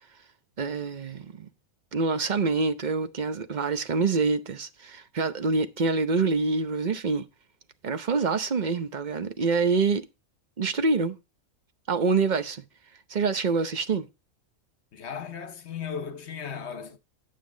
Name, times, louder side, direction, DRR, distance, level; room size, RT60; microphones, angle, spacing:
voice 1, 0.6-1.5 1.9-7.2 7.8-10.1 10.6-11.2 11.9-12.6 13.1-14.1, right 4 dB, 40° right, 0.8 m, -26 dB
voice 2, 14.9-17.0, left 7 dB, 55° left, 1.2 m, -36 dB
9.3 x 7.4 x 3.8 m
omnidirectional pair, 1.4 m